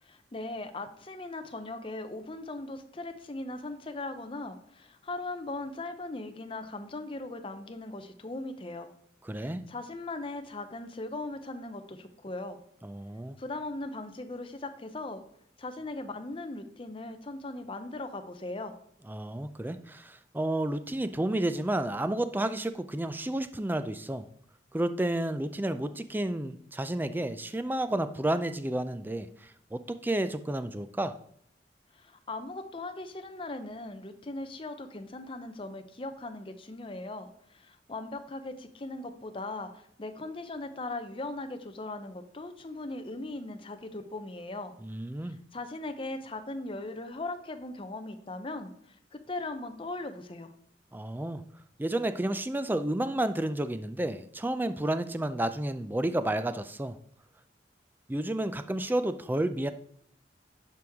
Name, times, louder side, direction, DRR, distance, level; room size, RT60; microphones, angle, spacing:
voice 1, 0.0-8.9 9.4-12.6 13.4-15.2 15.6-18.7 31.9-44.7 45.2-48.7 49.1-50.5, left 2 dB, 30° left, 7 dB, 0.7 m, -39 dB
voice 2, 9.2-9.6 12.8-13.4 19.1-24.2 24.7-31.2 44.8-45.4 50.9-51.4 51.8-57.0 58.1-59.7, right 1 dB, 10° right, 11 dB, 0.4 m, -31 dB
11.0 x 4.6 x 3.5 m, 0.66 s
head